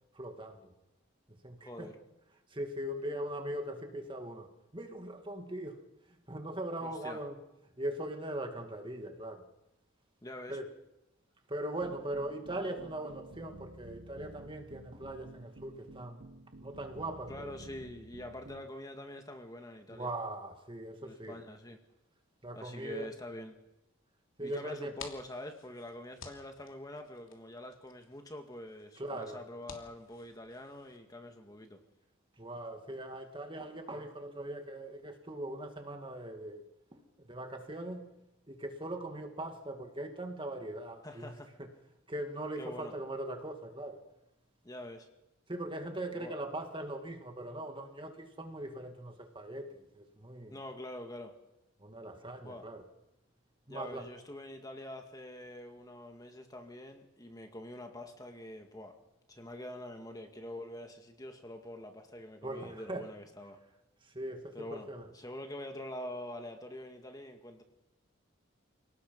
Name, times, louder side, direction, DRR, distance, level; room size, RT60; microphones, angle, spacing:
voice 1, 0.1-0.7 1.4-1.9 2.5-4.5 4.7-5.8 6.3-7.4 7.8-9.4 10.5-10.7 11.5-16.3 16.6-17.6 19.9-21.4 22.4-23.1 24.4-24.9 29.0-29.4 32.4-36.6 36.9-38.1 38.5-41.3 41.6-41.7 42.1-44.0 45.5-50.6 51.8-52.8 53.7-54.1 62.4-63.0 64.1-65.0, right 1 dB, 25° right, 5 dB, 2.3 m, -40 dB
voice 2, 1.6-2.0 6.8-7.2 10.2-10.6 17.3-20.1 20.9-21.8 22.5-23.6 24.4-31.8 41.0-41.5 42.6-42.9 44.6-45.1 46.1-46.4 50.5-51.4 52.4-52.7 53.7-59.0 59.3-63.6 64.5-67.6, left 1 dB, 20° left, 4 dB, 1.9 m, -45 dB
sound 1, 11.8-18.7, right 1 dB, 55° right, 1.3 m, -52 dB
sound 2, 24.7-31.0, left 5 dB, 85° left, 3.0 m, -53 dB
29.0 x 19.0 x 5.4 m, 0.91 s
head